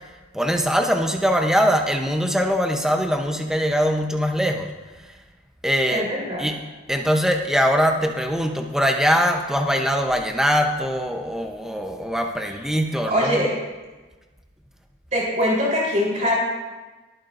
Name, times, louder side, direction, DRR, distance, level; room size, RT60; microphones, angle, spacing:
voice 1, 0.3-4.7 5.6-6.1 6.4-6.6 6.9-13.5, equal, 5° right, 3 dB, 0.8 m, -22 dB
voice 2, 5.9-6.5 13.1-13.5 15.1-16.4, equal, 35° right, -4 dB, 3.9 m, -22 dB
21.0 x 9.0 x 2.6 m, 1.2 s
head